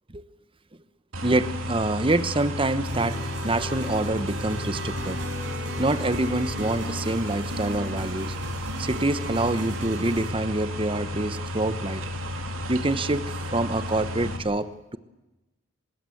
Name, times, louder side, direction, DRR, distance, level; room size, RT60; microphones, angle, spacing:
sound 1, 1.1-14.4, left 1 dB, 70° right, 3.2 m, -33 dB
voice 1, 1.2-5.2 5.8-8.3 8.8-12.0 12.7-15.0, right 2 dB, 25° right, 13 dB, 1.0 m, -26 dB
sound 2, 2.9-10.3, right 1 dB, 55° right, 6.6 m, -37 dB
25.0 x 21.0 x 7.8 m, 1.0 s
head